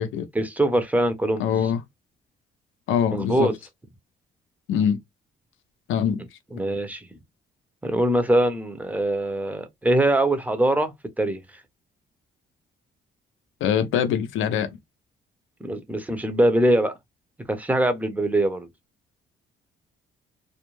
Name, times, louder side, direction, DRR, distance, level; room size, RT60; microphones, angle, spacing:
voice 1, 0.3-1.5 3.1-3.5 6.5-7.1 7.8-11.4 15.6-16.9 17.5-18.7, right 1 dB, 5° right, 0.6 m, -22 dB
voice 2, 1.4-1.8 2.9-3.5 4.7-5.0 5.9-6.2 13.6-14.8, left 8 dB, 85° left, 0.6 m, -23 dB
2.4 x 2.1 x 3.0 m
cardioid pair, 90°, 20 cm